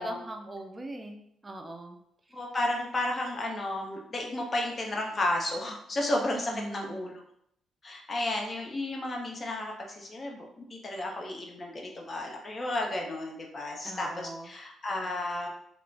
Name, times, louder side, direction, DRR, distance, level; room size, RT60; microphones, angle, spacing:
voice 1, 0.0-2.0 6.3-6.9 13.8-14.5, right 1 dB, 25° right, 4 dB, 0.4 m, -40 dB
voice 2, 2.3-7.1 7.8-15.5, left 1 dB, 35° left, 0 dB, 0.6 m, -33 dB
2.4 x 2.0 x 3.2 m, 0.73 s
cardioid pair, 90°, 0 cm